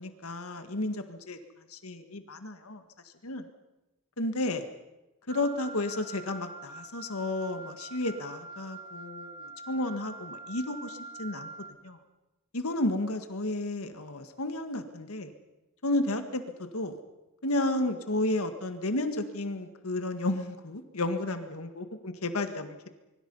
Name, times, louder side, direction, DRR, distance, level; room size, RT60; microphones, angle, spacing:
voice 1, 0.0-1.4 1.7-2.8 3.2-3.4 4.2-4.6 5.3-11.5 11.8-12.0 12.5-15.3 15.8-16.9 17.4-22.9, left 2 dB, 70° left, 8 dB, 1.9 m, -32 dB
Wind instrument woodwind instrument, 5.3-11.7, right 3 dB, 25° right, 2.4 m, -45 dB
24.5 x 24.5 x 5.6 m, 1.0 s
head